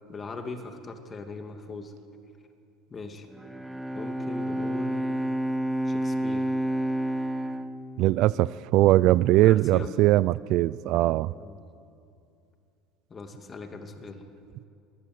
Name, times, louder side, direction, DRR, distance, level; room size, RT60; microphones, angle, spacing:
voice 1, 0.1-1.9 2.9-3.3 3.9-5.3 5.9-6.5 9.4-9.9 11.3-11.6 13.1-14.3, left 3 dB, 30° left, 6 dB, 2.5 m, -40 dB
Bowed string instrument, 3.3-8.7, right 1 dB, 5° right, 1.2 m, -30 dB
voice 2, 8.0-11.3, right 16 dB, 60° right, 20 dB, 0.4 m, -21 dB
22.0 x 15.0 x 9.5 m, 2.5 s
supercardioid pair, 100°, 0 cm